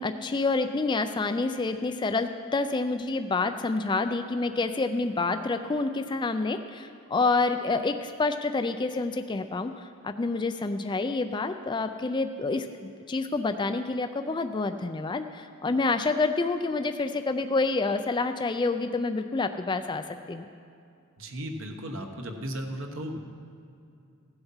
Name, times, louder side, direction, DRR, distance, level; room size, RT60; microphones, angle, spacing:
voice 1, 0.0-20.5, left 3 dB, 20° left, 8 dB, 0.3 m, -28 dB
voice 2, 21.2-23.2, equal, 65° right, 4 dB, 1.2 m, -35 dB
16.0 x 7.9 x 5.6 m, 2.5 s
head